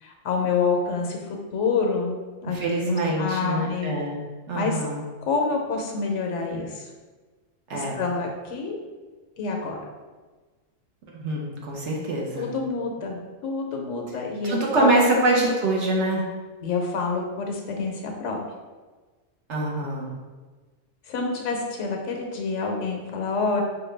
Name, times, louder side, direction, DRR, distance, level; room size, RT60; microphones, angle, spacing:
voice 1, 0.0-2.6 2.8-3.9 4.5-4.8 5.2-6.9 7.7-8.8 9.4-9.8 12.4-14.9 16.6-18.4 21.1-23.6, left 4 dB, 75° left, 2 dB, 0.9 m, -27 dB
voice 2, 2.5-4.2 4.5-5.0 7.7-8.0 11.1-12.5 14.4-16.3 19.5-20.1, right 2 dB, 70° right, -2 dB, 1.1 m, -24 dB
5.0 x 2.2 x 3.2 m, 1.3 s
omnidirectional pair, 1.3 m